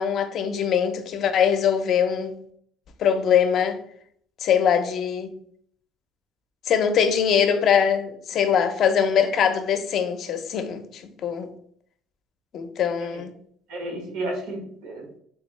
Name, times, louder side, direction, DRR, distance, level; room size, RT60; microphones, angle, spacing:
voice 1, 0.0-2.4 3.0-3.8 4.4-5.3 6.7-11.5 12.5-13.3, left 7 dB, 55° left, 0.5 m, -22 dB
voice 2, 13.7-15.2, right 1 dB, 90° right, 1.3 m, -33 dB
3.5 x 2.7 x 3.1 m
cardioid pair, 105°, 0 cm